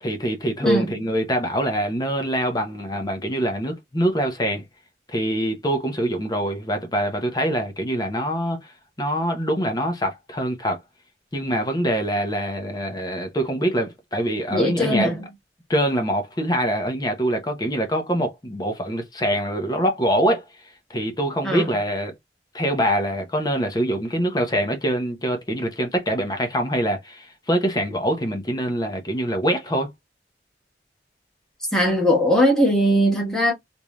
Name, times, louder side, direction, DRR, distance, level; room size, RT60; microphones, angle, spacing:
voice 1, 0.0-4.6 5.1-8.7 9.0-10.8 11.3-15.1 15.7-20.4 20.9-22.1 22.5-29.9, equal, 20° left, 0.6 m, -24 dB
voice 2, 14.5-15.3 21.4-21.7 31.7-33.5, equal, 5° left, 1.1 m, -20 dB
3.1 x 2.6 x 2.2 m
head